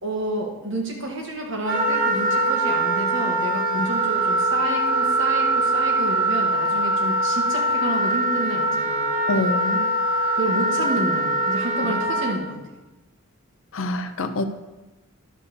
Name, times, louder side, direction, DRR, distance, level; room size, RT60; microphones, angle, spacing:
voice 1, 0.0-9.0 10.3-12.6, right 1 dB, 55° right, 1 dB, 1.5 m, -29 dB
Wind instrument woodwind instrument, 1.6-12.3, right 2 dB, 90° right, 2.5 m, -22 dB
voice 2, 9.3-9.8 11.8-11.9 13.7-14.4, left 2 dB, 60° left, 10 dB, 0.6 m, -25 dB
11.0 x 4.3 x 6.8 m, 1.1 s
head